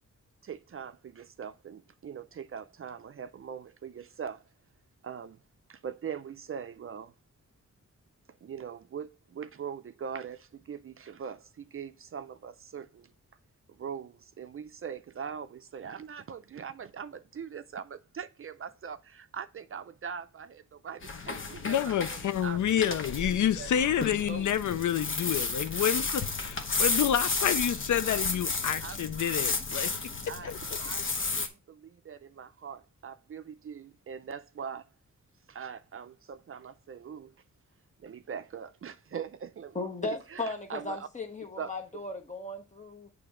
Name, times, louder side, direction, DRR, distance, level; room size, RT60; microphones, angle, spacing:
voice 1, 0.4-4.4 5.0-5.4 5.7-7.1 8.4-13.1 13.8-23.0 23.3-23.7 24.3-24.8 28.8-29.1 30.3-34.9 35.5-37.3 38.0-39.8 40.0-41.1 41.6-41.7, right 7 dB, 45° right, 0.4 m, -42 dB
sound 1, 21.0-31.5, left 4 dB, 40° left, 1.0 m, -33 dB
voice 2, 21.6-29.9 30.4-30.6, left 9 dB, 75° left, 0.5 m, -28 dB
voice 3, 39.7-43.1, left 3 dB, 25° left, 1.2 m, -36 dB
8.8 x 3.3 x 4.9 m
wide cardioid pair, 165°, 30 cm